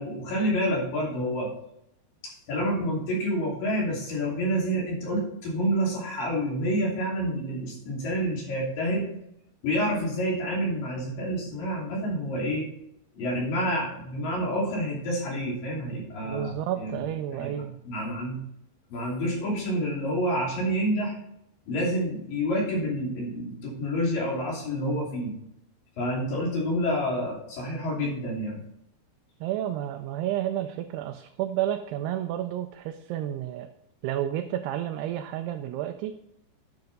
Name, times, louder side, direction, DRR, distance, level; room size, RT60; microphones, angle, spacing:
voice 1, 0.0-1.5 2.2-9.1 9.6-12.7 13.1-17.0 17.3-17.5 17.8-18.4 18.9-21.2 21.7-25.3 26.0-28.6, equal, 55° left, -3 dB, 4.3 m, -28 dB
voice 2, 16.2-17.8 29.4-33.7 34.0-36.1, right 12 dB, 80° right, 6 dB, 2.5 m, -31 dB
10.5 x 6.8 x 3.9 m, 0.78 s
omnidirectional pair, 4.9 m